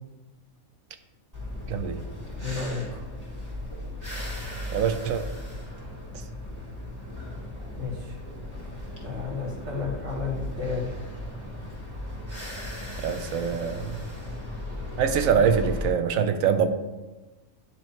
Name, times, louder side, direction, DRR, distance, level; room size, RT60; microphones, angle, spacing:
sound 1, 1.3-15.9, left 1 dB, 15° right, 1.9 m, -36 dB
voice 1, 1.7-2.0 4.7-5.2 13.0-14.0 15.0-16.7, right 7 dB, 85° right, 8 dB, 1.1 m, -24 dB
voice 2, 2.3-3.0 7.8-8.2 9.0-11.1, left 4 dB, 60° right, -3 dB, 1.9 m, -32 dB
9.5 x 3.3 x 4.5 m, 1.2 s
omnidirectional pair, 1.4 m